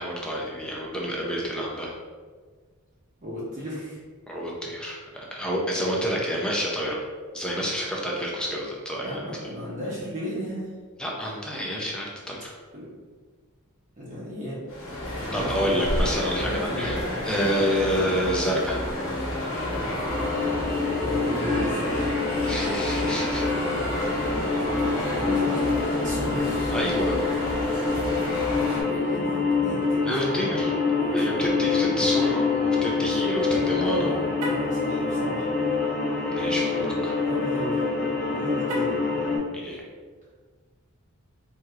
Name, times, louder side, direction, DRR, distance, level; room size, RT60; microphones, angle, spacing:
voice 1, 0.0-1.9 4.3-7.0 7.3-9.2 11.0-12.5 15.3-17.0 17.3-18.8 22.5-23.5 26.7-27.2 30.0-30.8 31.1-34.3 36.3-37.2 39.5-39.8, equal, 5° left, -3 dB, 0.6 m, -28 dB
voice 2, 3.2-4.0 9.0-10.7 12.7-12.9 14.0-14.6 15.3-16.0 16.4-17.1 20.9-22.1 25.1-26.5 28.8-31.6 32.9-35.5 37.3-37.8 38.3-39.0, equal, 35° right, -8 dB, 0.7 m, -34 dB
sound 1, 14.7-28.8, left 1 dB, 65° left, 1.1 m, -30 dB
sound 2, 20.1-39.4, left 4 dB, 35° left, 0.9 m, -26 dB
Car, 34.3-34.8 38.6-39.1, right 2 dB, 85° right, 0.7 m, -34 dB
4.3 x 2.8 x 2.4 m, 1.5 s
head